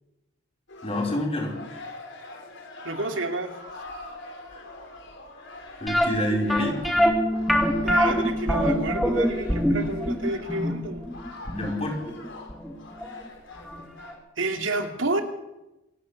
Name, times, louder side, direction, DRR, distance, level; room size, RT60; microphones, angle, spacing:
sound 1, 0.7-14.2, left 2 dB, 65° left, 4.6 m, -43 dB
voice 1, 0.8-1.5 4.5-4.6 5.8-7.0 11.4-12.0, left 1 dB, 30° left, 0 dB, 5.2 m, -27 dB
voice 2, 2.8-3.5 7.8-11.1 14.4-15.2, right 2 dB, 75° right, 5 dB, 2.6 m, -29 dB
sound 2, 5.9-12.7 13.0-13.1 13.7-13.8 14.1-14.2, equal, ahead, 2.5 m, -24 dB
Bass guitar, 7.0-11.3 11.6-13.2, left 1 dB, 30° right, 4.6 m, -35 dB
27.0 x 12.0 x 8.3 m, 0.94 s
head